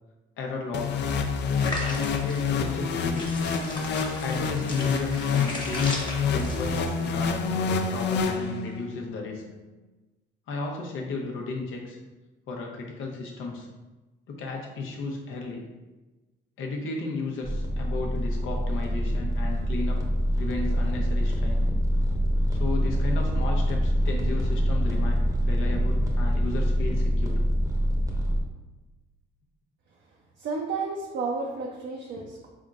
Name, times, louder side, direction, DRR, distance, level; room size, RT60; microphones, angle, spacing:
voice 1, 0.4-1.1 1.7-3.5 4.2-5.9 6.3-9.4 10.5-12.0 12.5-13.7 14.3-15.6 16.6-20.0 20.3-21.7 22.5-27.4, left 3 dB, 85° left, 0 dB, 0.8 m, -34 dB
sound 1, 0.7-8.9, left 5 dB, 60° left, 0.4 m, -27 dB
sound 2, 1.6-6.9, left 1 dB, 25° left, 1.0 m, -37 dB
sound 3, 17.4-28.4, equal, 15° right, 0.8 m, -25 dB
voice 2, 30.4-32.5, right 4 dB, 60° right, -1 dB, 0.6 m, -32 dB
4.0 x 3.5 x 2.4 m, 1.1 s
cardioid pair, 90°, 20 cm